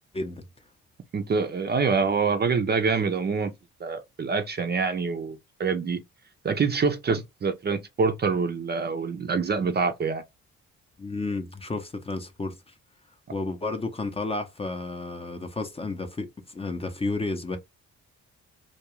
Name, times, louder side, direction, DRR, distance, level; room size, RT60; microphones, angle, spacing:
voice 1, 1.1-3.5 3.8-6.0 6.4-10.2, right 5 dB, 35° right, 0.5 m, -26 dB
voice 2, 11.0-12.7 13.3-17.6, left 3 dB, 20° left, 0.6 m, -32 dB
2.3 x 2.3 x 2.9 m
cardioid pair, 90°, 30 cm